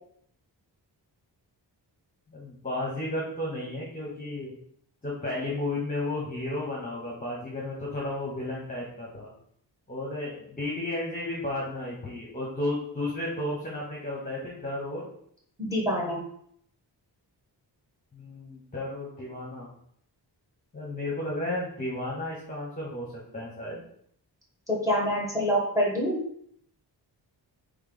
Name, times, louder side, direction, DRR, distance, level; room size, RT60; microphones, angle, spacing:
voice 1, 2.3-4.5 5.0-9.3 9.9-15.0 18.1-19.7 20.7-23.8, left 1 dB, 20° left, -4 dB, 0.9 m, -33 dB
voice 2, 15.6-16.2 24.7-26.2, equal, 10° right, -3 dB, 1.3 m, -26 dB
3.3 x 3.2 x 3.9 m, 0.66 s
wide cardioid pair, 120°, 42 cm